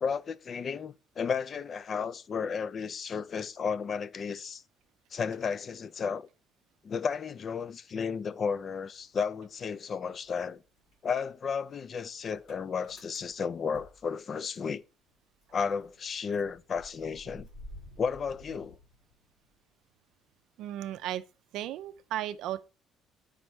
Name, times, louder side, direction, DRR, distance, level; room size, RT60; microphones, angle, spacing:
voice 1, 0.0-4.6 5.1-6.3 6.8-10.6 11.0-14.8 15.5-17.5 18.0-18.8, left 6 dB, 45° left, 0.3 m, -33 dB
Motor vehicle (road) / Engine starting, 9.0-9.8 10.1-14.8 15.1-15.2 15.4-19.5, left 1 dB, 75° left, 2.7 m, -53 dB
voice 2, 20.6-21.2 21.5-22.6, right 12 dB, 80° right, 0.4 m, -35 dB
5.1 x 4.3 x 4.7 m
cardioid pair, 90°, 0 cm